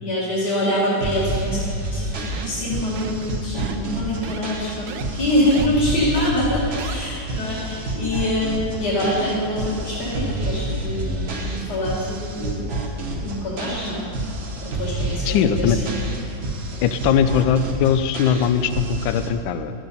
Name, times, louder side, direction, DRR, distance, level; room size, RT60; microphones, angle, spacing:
voice 1, 0.0-4.9 5.1-12.7 13.1-14.0 14.6-15.9, left 1 dB, 50° left, -8 dB, 2.4 m, -25 dB
sound 1, 1.0-19.3, right 1 dB, 45° right, 1.2 m, -29 dB
sound 2, 2.3-2.6 3.0-3.2 3.6-3.9 4.2-4.4 4.9-5.0 5.5-5.7 6.1-6.3 6.8-6.9, right 9 dB, 75° right, 1.4 m, -34 dB
voice 2, 15.3-15.8 16.8-19.7, left 8 dB, 75° left, 11 dB, 1.3 m, -20 dB
12.0 x 8.1 x 5.4 m, 2.4 s
omnidirectional pair, 2.3 m